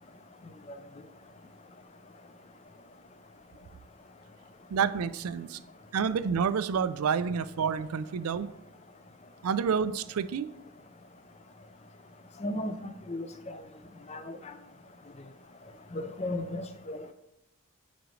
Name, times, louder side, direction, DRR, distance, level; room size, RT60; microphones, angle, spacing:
voice 1, 4.7-5.6 5.9-8.5 9.4-10.5, right 6 dB, 85° right, 0.4 m, -29 dB
voice 2, 12.4-13.5 14.1-14.4 15.9-17.0, left 1 dB, 30° left, 0.5 m, -35 dB
9.4 x 5.1 x 3.2 m
head